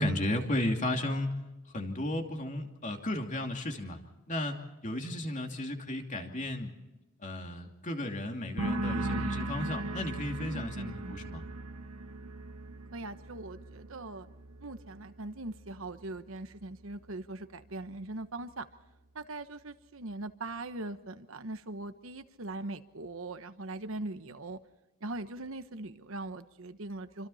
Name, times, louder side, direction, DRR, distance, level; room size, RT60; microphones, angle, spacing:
voice 1, 0.0-1.4 1.7-4.0 4.3-4.6 4.8-6.7 7.2-11.4, left 1 dB, 35° left, 3 dB, 2.7 m, -34 dB
sound 1, 8.6-16.0 16.3-16.9, right 2 dB, 85° right, 1.9 m, -38 dB
voice 2, 10.4-11.2 12.9-14.3 14.6-18.7 19.1-24.6 25.0-27.3, right 2 dB, 65° right, 10 dB, 1.2 m, -41 dB
28.0 x 25.5 x 4.3 m, 1.0 s
head